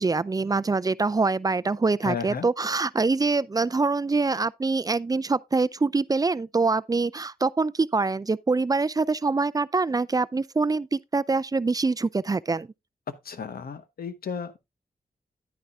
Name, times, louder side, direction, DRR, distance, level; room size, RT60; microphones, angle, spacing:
voice 1, 0.0-12.7, right 3 dB, 25° right, 0.4 m, -24 dB
voice 2, 2.0-2.5 13.3-14.6, left 6 dB, 75° left, 1.1 m, -33 dB
10.5 x 9.6 x 2.4 m
cardioid pair, 60°, 15 cm